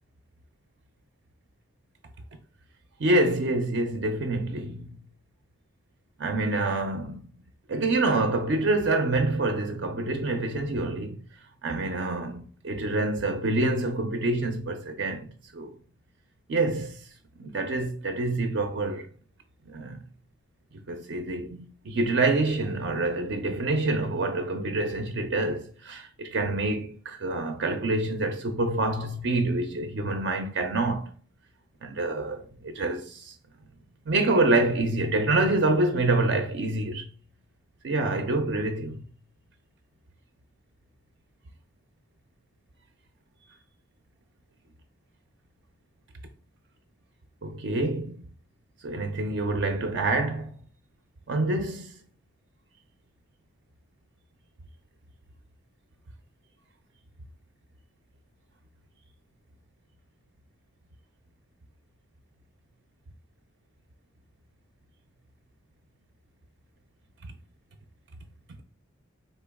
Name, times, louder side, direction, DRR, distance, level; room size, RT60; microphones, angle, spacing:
voice 1, 3.0-4.9 6.2-7.2 7.7-11.2 11.6-15.3 15.5-15.7 16.5-17.1 17.4-19.1 19.7-20.0 20.9-31.1 31.8-33.3 34.1-37.1 37.8-39.0 47.4-48.2 48.8-50.5 51.3-52.0 67.2-67.3, right 2 dB, 55° right, 0.4 m, -27 dB
4.2 x 2.9 x 3.5 m
head